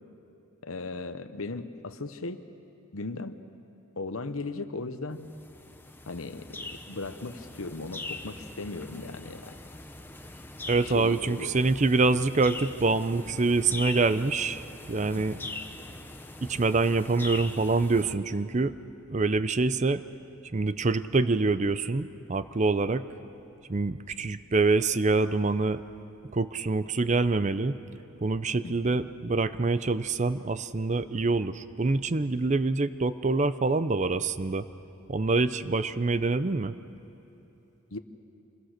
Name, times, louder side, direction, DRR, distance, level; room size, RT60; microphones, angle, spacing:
voice 1, 0.6-2.4 2.9-3.4 4.0-5.3 6.1-9.5 10.8-11.5 15.1-15.5 28.6-29.0 37.9-38.0, left 3 dB, 75° left, 11 dB, 1.0 m, -37 dB
sound 1, 5.2-18.2, left 2 dB, 10° left, 0.9 m, -42 dB
voice 2, 10.7-14.6 14.9-15.4 16.4-18.7 19.1-20.0 20.5-23.0 23.7-25.8 26.3-27.8 28.2-34.6 35.1-36.7, right 3 dB, 35° right, 13 dB, 0.5 m, -25 dB
27.0 x 21.0 x 6.6 m, 2.9 s
head